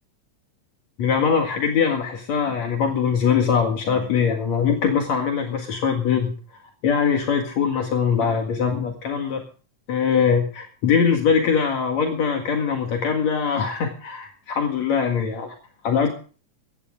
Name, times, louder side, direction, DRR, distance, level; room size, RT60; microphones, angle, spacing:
voice 1, 1.0-6.3 6.8-9.4 9.9-15.5 15.8-16.1, left 6 dB, 70° left, 3 dB, 3.2 m, -22 dB
16.5 x 15.5 x 3.8 m, 0.39 s
omnidirectional pair, 3.3 m